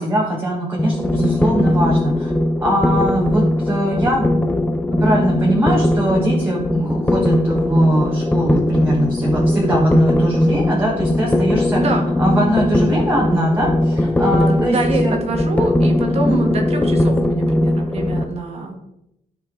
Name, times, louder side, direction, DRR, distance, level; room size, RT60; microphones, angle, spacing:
voice 1, 0.0-2.3 2.6-11.8 12.2-15.1 16.1-16.4, right 1 dB, 15° right, -4 dB, 1.5 m, -21 dB
sound 1, 0.8-18.2, left 1 dB, 10° left, 0.6 m, -19 dB
voice 2, 11.7-12.1 14.7-18.8, right 3 dB, 45° right, 3 dB, 1.6 m, -25 dB
11.5 x 5.7 x 3.9 m, 0.83 s
wide cardioid pair, 160°, 15 cm